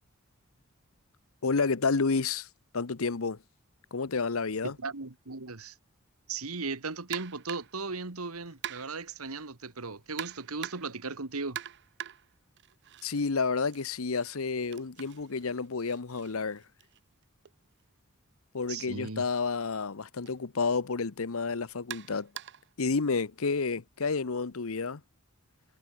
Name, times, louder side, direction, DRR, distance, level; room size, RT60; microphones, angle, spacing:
voice 1, 1.4-2.5 2.7-3.4 3.9-4.7 13.0-16.6 18.5-22.3 22.8-25.0, left 4 dB, 70° left, 0.9 m, -30 dB
voice 2, 4.6-5.8 6.3-11.6 18.7-19.2, right 4 dB, 90° right, 1.9 m, -37 dB
sound 1, 7.1-7.8 8.6-9.1 10.2-11.0 11.5-13.3 13.6-17.5 18.6-18.8 19.2-19.3 20.3-20.4 21.9-22.7, right 10 dB, 55° right, 0.7 m, -44 dB
head